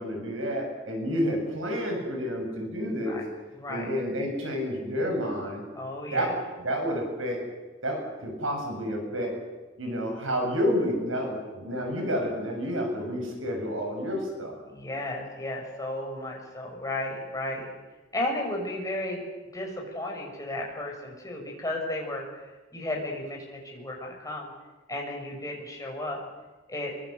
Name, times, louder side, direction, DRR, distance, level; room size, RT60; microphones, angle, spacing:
voice 1, 0.0-3.2 3.7-5.6 6.1-6.3 6.6-7.4 7.8-9.3 9.8-14.5, equal, 75° right, 2 dB, 7.8 m, -29 dB
voice 2, 2.9-3.2 3.5-3.9 5.7-6.3 14.7-17.6 18.1-19.2 19.5-22.4 22.7-24.5 24.9-26.2 26.7-26.9, left 1 dB, 15° left, 0 dB, 6.6 m, -34 dB
25.5 x 23.0 x 8.1 m, 1.2 s
head